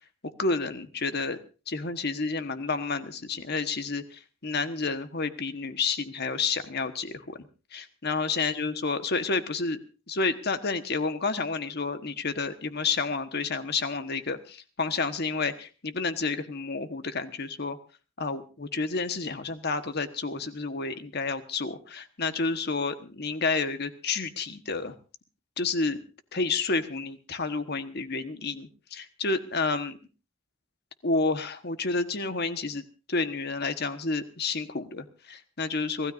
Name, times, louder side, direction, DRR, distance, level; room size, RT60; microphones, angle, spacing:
voice 1, 0.4-1.4 1.7-9.8 10.1-17.8 18.2-24.9 25.6-26.0 26.3-30.0 31.0-36.1, left 4 dB, 55° left, 9 dB, 1.3 m, -30 dB
25.5 x 16.5 x 2.6 m, 0.34 s
head